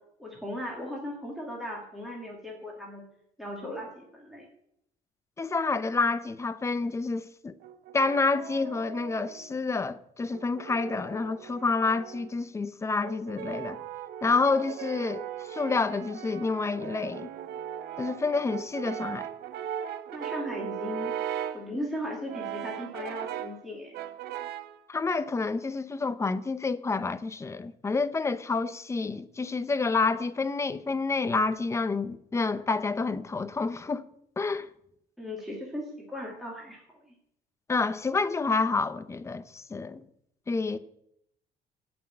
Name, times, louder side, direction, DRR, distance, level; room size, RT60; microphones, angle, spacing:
voice 1, 0.2-3.0 3.4-4.5 20.1-21.1 21.5-23.9 35.2-36.8 37.1-37.2, left 1 dB, ahead, 2.5 m, -37 dB
voice 2, 5.4-7.6 7.9-13.8 14.2-17.3 18.0-19.3 24.9-34.1 34.4-34.7 37.7-40.0 40.5-40.8, left 4 dB, 15° left, 0.6 m, -28 dB
Brass instrument, 7.6-9.6 10.3-12.4 13.0-21.7 22.3-23.6 23.9-24.8, right 10 dB, 80° right, 0.8 m, -38 dB
17.0 x 6.1 x 8.7 m
cardioid pair, 155°, 16 cm